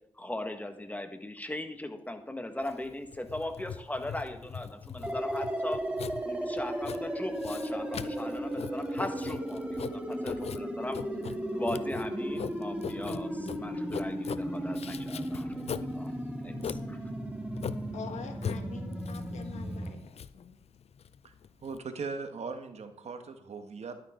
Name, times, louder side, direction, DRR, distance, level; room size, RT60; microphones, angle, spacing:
voice 1, 0.1-5.8 6.2-11.0 11.5-15.5 16.4-17.0, left 1 dB, 15° left, 7 dB, 1.6 m, -39 dB
Writing, 2.6-21.8, left 7 dB, 60° left, 0.5 m, -41 dB
sound 1, 5.0-19.9, right 1 dB, 10° right, 1.9 m, -35 dB
voice 2, 17.9-20.5, left 6 dB, 80° left, 6 dB, 1.5 m, -45 dB
voice 3, 21.6-24.0, right 4 dB, 65° right, 7 dB, 1.3 m, -39 dB
11.5 x 8.7 x 3.8 m, 0.76 s
cardioid pair, 55°, 12 cm